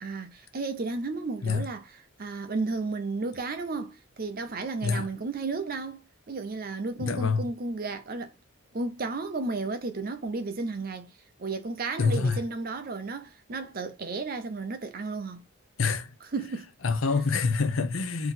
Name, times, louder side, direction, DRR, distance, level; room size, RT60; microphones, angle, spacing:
voice 1, 0.0-8.3 8.7-11.1 11.4-15.4 16.2-16.7, right 3 dB, 40° right, 0.5 m, -33 dB
voice 2, 7.0-7.4 12.0-12.4 15.8-16.1 16.8-18.3, left 4 dB, 70° left, 0.7 m, -26 dB
3.9 x 2.8 x 4.1 m
head